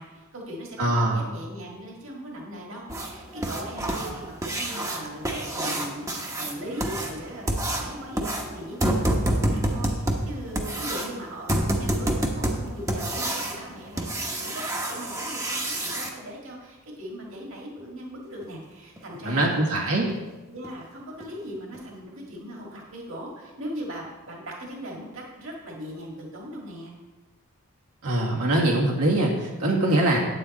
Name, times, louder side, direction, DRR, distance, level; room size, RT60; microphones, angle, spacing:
voice 1, 0.0-19.5 20.5-26.9, equal, 60° right, -1 dB, 1.9 m, -39 dB
voice 2, 0.8-1.2 19.2-20.1 28.0-30.2, right 1 dB, 85° right, -3 dB, 1.8 m, -22 dB
sound 1, 2.9-16.1 18.4-18.5 19.0-19.1 19.5-19.6 20.1-20.2 20.6-20.8 21.2-21.3 21.7-21.8, right 1 dB, 15° right, 0.9 m, -28 dB
9.2 x 8.7 x 4.2 m, 1.2 s
head